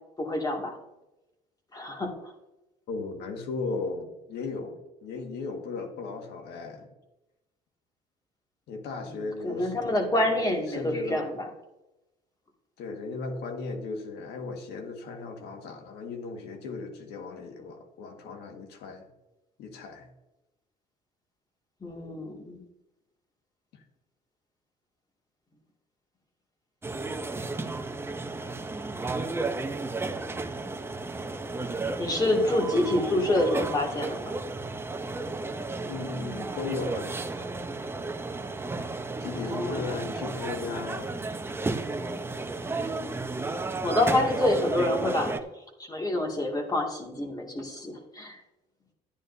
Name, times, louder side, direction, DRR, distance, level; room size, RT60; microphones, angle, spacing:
voice 1, 0.2-0.8 1.7-2.3 9.4-11.5 21.8-22.6 32.0-34.4 39.3-40.0 43.8-45.4 45.8-48.4, left 1 dB, 20° left, 1 dB, 2.2 m, -27 dB
voice 2, 2.9-6.9 8.7-11.3 12.8-19.1 19.6-20.1 23.7-23.8 35.9-37.2 39.2-41.1, left 4 dB, 80° left, 5 dB, 1.7 m, -36 dB
sound 1, 26.8-45.4, right 3 dB, 15° right, 0.7 m, -33 dB
12.0 x 9.7 x 2.7 m, 0.97 s
cardioid pair, 110°, 17 cm